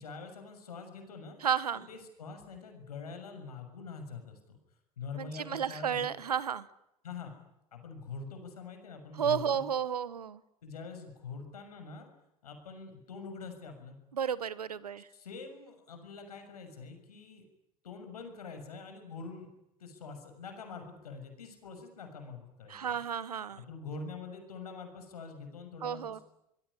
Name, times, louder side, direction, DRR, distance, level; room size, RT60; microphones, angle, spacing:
voice 1, 0.0-1.4 1.9-4.6 5.0-6.1 7.0-7.3 7.7-9.7 10.6-12.1 12.4-14.0 15.1-17.4 17.8-19.5 19.8-23.0 23.6-26.2, left 5 dB, 80° left, 6 dB, 6.7 m, -45 dB
voice 2, 1.4-1.9 5.2-6.7 9.2-10.4 14.1-15.1 22.7-23.6 25.8-26.2, right 8 dB, 85° right, 19 dB, 1.1 m, -32 dB
26.0 x 22.5 x 9.9 m, 0.84 s
hypercardioid pair, 75°, 19 cm